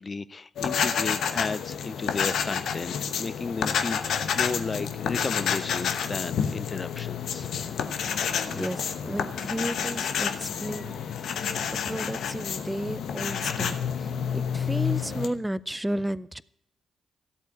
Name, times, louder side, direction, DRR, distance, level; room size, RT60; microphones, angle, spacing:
voice 1, 0.0-7.5, left 4 dB, 40° left, 0.5 m, -34 dB
sound 1, 0.6-15.3, left 7 dB, 65° left, 0.9 m, -29 dB
voice 2, 8.5-11.3 11.7-16.4, right 1 dB, 10° right, 0.6 m, -33 dB
13.5 x 8.2 x 8.3 m
hypercardioid pair, 40°, 0 cm